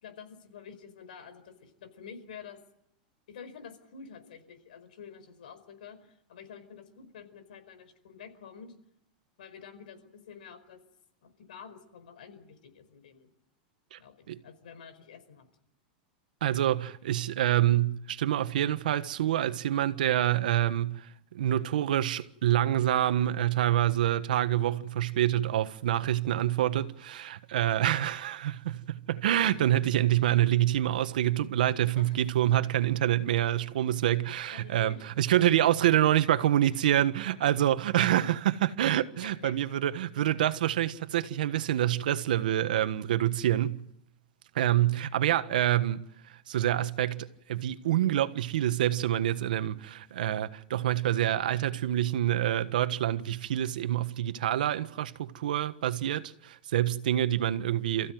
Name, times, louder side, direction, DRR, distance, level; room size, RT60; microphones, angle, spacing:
voice 1, 0.0-2.6 3.3-8.7 9.4-10.8 11.2-13.3 14.0-15.5 31.9-32.2 34.5-35.3 39.2-39.5, left 6 dB, 85° left, 4.9 m, -48 dB
voice 2, 16.4-43.9 44.5-58.1, right 12 dB, 80° right, 1.4 m, -27 dB
28.5 x 15.5 x 9.3 m
supercardioid pair, 175°, 4 cm